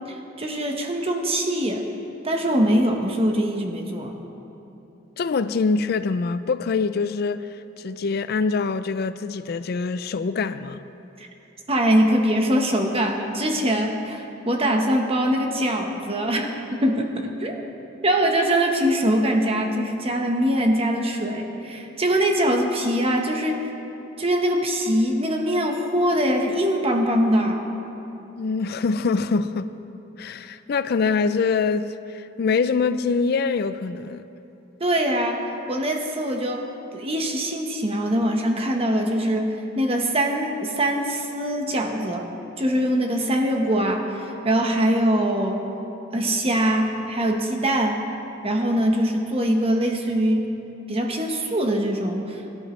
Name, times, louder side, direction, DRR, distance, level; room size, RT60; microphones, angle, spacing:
voice 1, 0.1-1.8 2.2-4.2 11.2-11.3 11.7-17.6 18.0-23.6 24.2-27.6 34.8-36.7 36.9-42.3 42.6-45.7 46.1-48.0 48.4-50.5 50.9-52.4, equal, 30° right, 1.2 m, -23 dB
voice 2, 5.2-10.8 28.4-29.7 30.2-34.2, left 4 dB, 55° left, 0.4 m, -24 dB
22.5 x 11.5 x 3.2 m
head